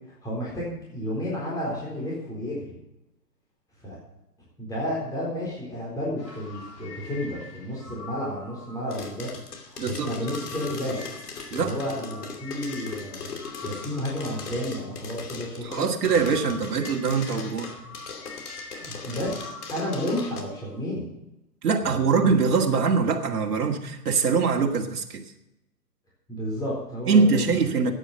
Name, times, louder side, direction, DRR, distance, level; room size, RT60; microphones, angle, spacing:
voice 1, 0.1-2.7 3.8-4.0 4.6-9.3 9.7-11.0 11.5-13.3 13.6-16.0 18.8-21.1 21.8-22.3 26.3-27.6, equal, 5° left, -6 dB, 4.0 m, -32 dB
sound 1, 6.2-15.4 15.8-20.8, left 3 dB, 80° left, 4.7 m, -45 dB
sound 2, 8.9-20.4, left 5 dB, 65° left, 2.7 m, -39 dB
voice 2, 9.8-10.1 11.5-11.7 15.6-17.7 21.6-25.2 27.1-27.9, right 5 dB, 65° right, 1 dB, 2.1 m, -23 dB
13.0 x 9.3 x 6.8 m, 0.87 s
hypercardioid pair, 135°, 49 cm